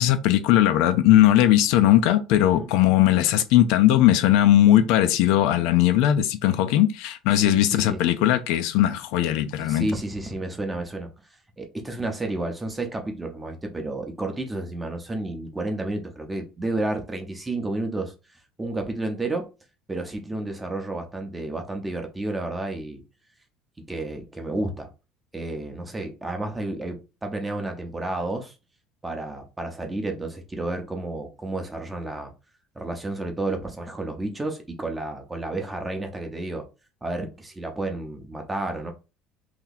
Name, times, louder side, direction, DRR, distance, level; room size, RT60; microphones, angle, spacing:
voice 1, 0.0-9.9, left 12 dB, 75° left, 0.4 m, -19 dB
voice 2, 7.3-8.0 9.6-11.1 11.6-18.1 18.6-19.5 19.9-23.0 23.9-24.9 25.3-28.6 29.0-32.3 32.8-36.6 37.0-38.9, right 2 dB, 10° right, 0.7 m, -31 dB
2.9 x 2.7 x 3.8 m
cardioid pair, 155°, 0 cm